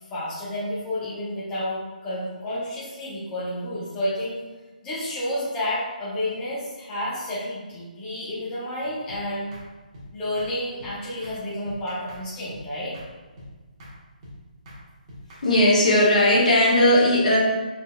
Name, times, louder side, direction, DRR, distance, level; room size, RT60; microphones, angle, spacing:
voice 1, 0.1-4.4 4.8-9.5 10.1-13.0, left 1 dB, 15° left, -10 dB, 1.1 m, -30 dB
sound 1, 9.1-9.2 9.5-9.7 9.9-10.1 10.4-10.5 10.8-10.9 11.2-11.4 11.7-12.2 12.5-12.7 12.9-13.1 13.4-13.5 13.8-14.0 14.2-14.4 14.7-14.8 15.1-15.7, left 1 dB, 30° right, 1.2 m, -43 dB
voice 2, 15.4-17.4, left 1 dB, 55° left, -5 dB, 1.4 m, -17 dB
4.4 x 3.8 x 2.4 m, 1.2 s
figure-of-eight pair, 140°, 5 cm